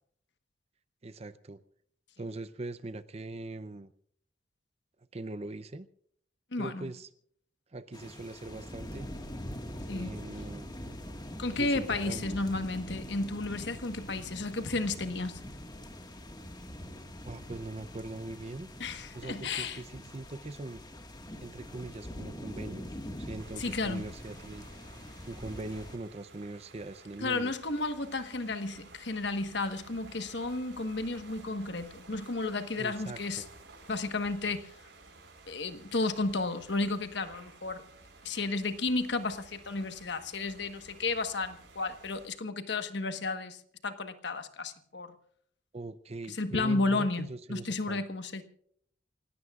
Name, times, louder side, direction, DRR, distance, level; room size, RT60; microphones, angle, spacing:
voice 1, 1.0-1.6 2.2-3.9 5.1-5.9 6.6-7.1 7.7-9.1 9.9-10.7 11.5-12.4 17.2-18.7 19.1-20.8 21.4-22.9 23.2-24.7 25.3-27.5 32.8-33.5 45.7-48.0, right 2 dB, 35° right, 0.6 m, -41 dB
voice 2, 6.5-6.9 9.9-10.2 11.4-15.4 18.8-19.8 23.6-24.1 27.2-33.4 33.9-34.7 35.5-37.8 38.2-45.1 46.3-48.4, left 3 dB, 65° left, 1.3 m, -33 dB
sound 1, 7.9-26.0, equal, 20° left, 1.7 m, -44 dB
sound 2, 23.4-42.3, right 3 dB, 70° right, 5.0 m, -54 dB
28.5 x 17.0 x 2.4 m
head